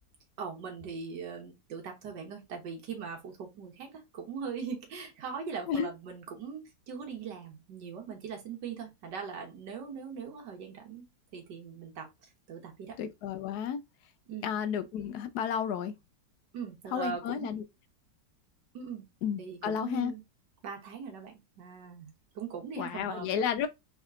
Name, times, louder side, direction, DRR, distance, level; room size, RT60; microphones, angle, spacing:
voice 1, 0.4-11.1 11.3-13.0 14.3-14.5 16.5-17.5 18.7-19.0 19.4-20.2 20.6-23.4, right 6 dB, 85° right, 1.6 m, -40 dB
voice 2, 13.0-13.8 14.4-15.9 16.9-17.6 19.2-20.1 22.8-23.7, left 8 dB, 75° left, 1.1 m, -32 dB
3.5 x 3.3 x 3.7 m
omnidirectional pair, 1.9 m